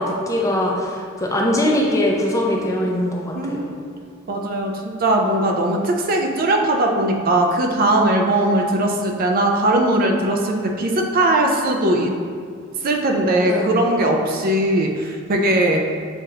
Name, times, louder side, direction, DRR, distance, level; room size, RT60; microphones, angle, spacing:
voice 1, 0.0-3.6 13.4-13.8, left 1 dB, 15° left, -1 dB, 0.4 m, -21 dB
voice 2, 3.4-3.7 4.3-12.2 12.8-15.9, right 1 dB, 45° right, 2 dB, 0.4 m, -19 dB
7.0 x 2.5 x 2.8 m, 2.1 s
head